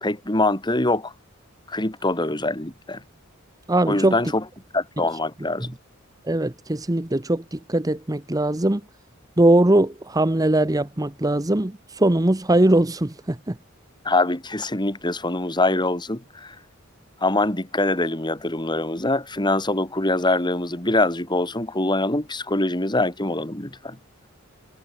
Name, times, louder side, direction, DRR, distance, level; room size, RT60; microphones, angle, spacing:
voice 1, 0.0-1.1 1.7-3.0 3.9-4.5 4.7-5.8 14.1-16.6 17.2-24.0, left 2 dB, 20° left, 3.4 m, -24 dB
voice 2, 3.7-4.1 5.0-5.1 6.3-8.8 9.4-13.5, right 1 dB, 20° right, 1.0 m, -20 dB
head